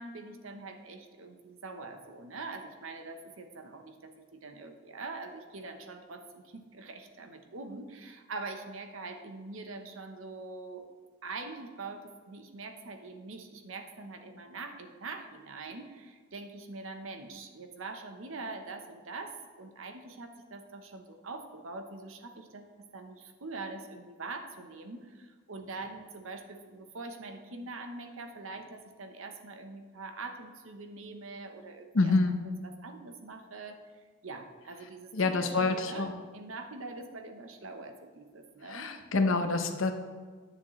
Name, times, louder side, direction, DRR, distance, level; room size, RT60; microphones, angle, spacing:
voice 1, 0.0-10.9 11.2-32.1 32.6-33.8 34.2-38.9, right 3 dB, 75° right, 6 dB, 0.9 m, -43 dB
voice 2, 31.9-32.4 35.1-36.1 38.7-39.9, left 3 dB, 75° left, 7 dB, 0.8 m, -27 dB
9.9 x 6.8 x 3.1 m, 1.4 s
head